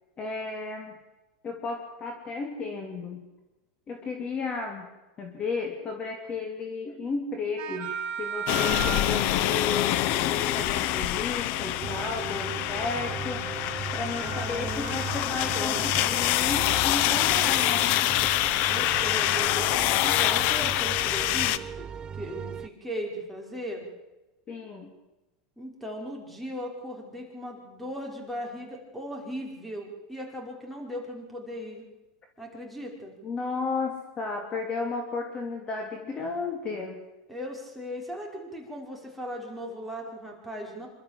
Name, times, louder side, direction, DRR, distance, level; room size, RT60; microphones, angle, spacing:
voice 1, 0.2-0.9 1.4-3.2 3.9-4.9 5.2-7.9 8.2-13.5 13.9-17.9 24.5-24.9 33.2-37.0, left 4 dB, 30° left, 3 dB, 2.8 m, -33 dB
sound 1, 7.6-11.1 11.9-12.5 12.8-15.6, right 7 dB, 50° right, 3.4 m, -38 dB
sound 2, 8.5-21.6, left 14 dB, 55° left, 0.9 m, -26 dB
sound 3, 11.8-22.7, right 7 dB, 25° right, 0.7 m, -38 dB
voice 2, 14.2-16.2 18.6-23.8 25.6-31.8 32.4-33.1 37.3-40.9, equal, ahead, 0 dB, 5.5 m, -38 dB
26.5 x 13.0 x 7.7 m, 1.0 s
supercardioid pair, 125°, 3 cm